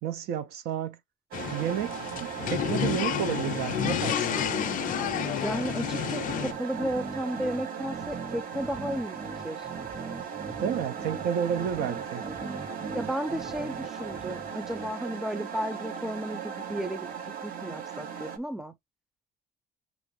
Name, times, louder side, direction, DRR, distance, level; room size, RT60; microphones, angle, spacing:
voice 1, 0.0-1.0 1.5-4.5 10.6-12.2, right 9 dB, 75° right, 0.6 m, -31 dB
sound 1, 1.3-6.5, left 10 dB, 55° left, 0.5 m, -30 dB
sound 2, 1.3-18.4, right 7 dB, 60° right, 0.9 m, -38 dB
sound 3, 2.4-14.9, right 3 dB, 25° right, 0.9 m, -41 dB
voice 2, 5.4-9.2 9.4-9.7 12.9-17.1 17.4-18.7, equal, 5° right, 0.5 m, -33 dB
5.9 x 2.6 x 3.1 m
cardioid pair, 110°, 17 cm